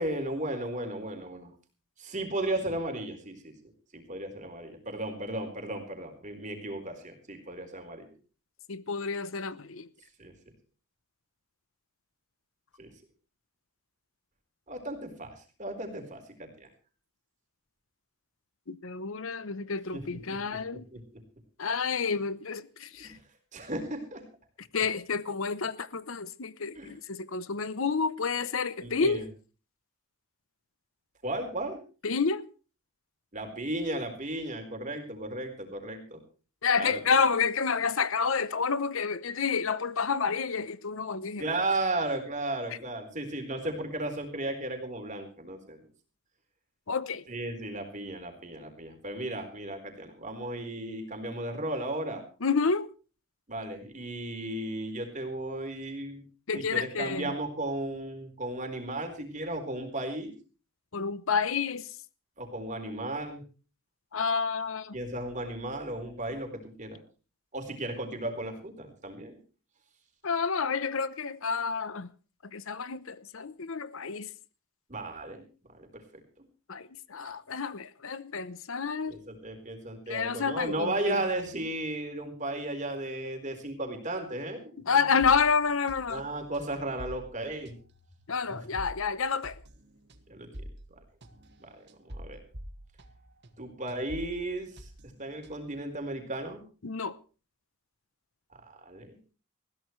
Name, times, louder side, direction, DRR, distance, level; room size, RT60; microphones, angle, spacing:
voice 1, 0.0-1.5 2.0-3.5 3.9-8.1 10.2-10.3 12.8-12.9 14.7-16.7 19.9-20.0 20.5-21.0 23.0-23.2 23.5-24.2 26.8-26.9 28.8-29.2 31.2-31.8 33.3-36.2 36.8-37.0 41.4-45.8 47.3-52.2 53.5-56.2 56.5-60.3 62.4-63.4 64.9-67.0 67.5-69.4 74.9-75.4 75.9-76.0 79.1-84.9 86.1-87.7 88.5-88.6 90.3-90.6 91.6-92.4 93.6-94.9 95.2-96.6 98.6-99.2, right 1 dB, 35° right, 4.1 m, -35 dB
voice 2, 8.7-9.9 18.7-20.8 21.6-23.2 24.6-29.3 32.0-32.5 36.6-41.5 46.9-47.2 52.4-52.9 56.5-57.3 60.9-62.0 64.1-65.0 70.2-72.1 72.5-74.3 76.7-79.2 80.1-81.2 84.9-86.3 88.3-89.6 96.8-97.2, left 5 dB, 65° left, 0.8 m, -29 dB
sound 1, 85.2-93.6 93.9-95.8, equal, 50° right, 2.0 m, -47 dB
20.5 x 15.5 x 3.2 m
head